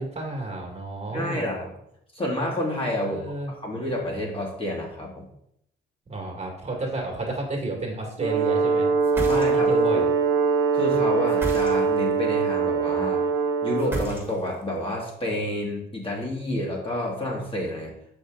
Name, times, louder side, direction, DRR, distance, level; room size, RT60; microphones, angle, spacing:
voice 1, 0.0-1.5 3.0-3.5 6.1-8.9 9.3-10.1, right 2 dB, 35° right, 0 dB, 2.0 m, -31 dB
voice 2, 1.1-1.7 2.1-3.2 3.5-5.3 9.2-10.0 10.7-13.2 13.6-17.9, left 1 dB, 25° left, -2 dB, 2.1 m, -29 dB
Brass instrument, 8.2-14.2, right 5 dB, 85° right, 0.9 m, -23 dB
sound 1, 9.0-9.9 11.3-12.1 13.8-14.6, right 1 dB, 10° right, 2.0 m, -33 dB
6.3 x 5.3 x 3.9 m, 0.75 s
cardioid pair, 90°, 20 cm